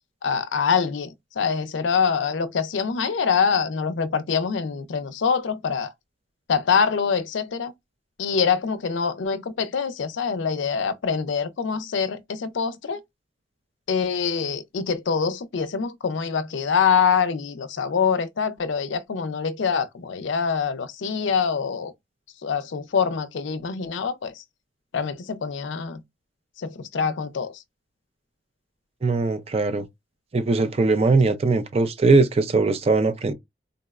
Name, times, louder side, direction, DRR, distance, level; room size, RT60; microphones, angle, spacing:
voice 1, 0.2-5.9 6.5-7.7 8.2-13.0 13.9-21.9 22.4-24.4 24.9-26.0 26.6-27.6, left 6 dB, 80° left, 0.4 m, -25 dB
voice 2, 29.0-29.9 30.3-33.3, right 3 dB, 30° right, 0.4 m, -20 dB
3.8 x 2.0 x 2.3 m
head